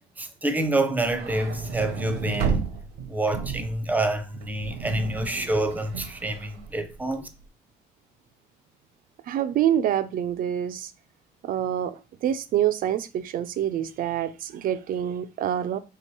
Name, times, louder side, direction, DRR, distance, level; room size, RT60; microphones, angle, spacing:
voice 1, 0.2-2.7 3.1-7.3, right 1 dB, 10° right, 0.6 m, -27 dB
sound 1, 1.1-7.3, right 7 dB, 80° right, 0.8 m, -33 dB
voice 2, 9.2-10.9 11.4-15.8, right 10 dB, 55° right, 0.4 m, -26 dB
3.4 x 2.9 x 4.5 m
cardioid pair, 110°, 17 cm